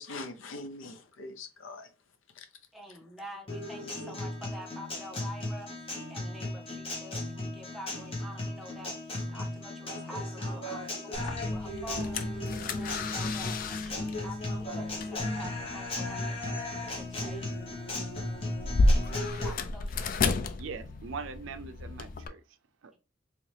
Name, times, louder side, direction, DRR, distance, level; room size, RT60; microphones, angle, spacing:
voice 1, 0.0-1.9 2.3-2.5 3.8-4.2, left 2 dB, 80° left, 0.6 m, -43 dB
voice 2, 2.7-17.5 19.4-20.1, equal, ahead, 0.6 m, -47 dB
Guitar, 3.5-19.5, left 2 dB, 30° left, 0.9 m, -36 dB
sound 1, 11.1-22.3, left 2 dB, 45° left, 0.3 m, -33 dB
voice 3, 20.6-23.0, right 5 dB, 75° right, 0.4 m, -42 dB
3.1 x 2.8 x 3.1 m
head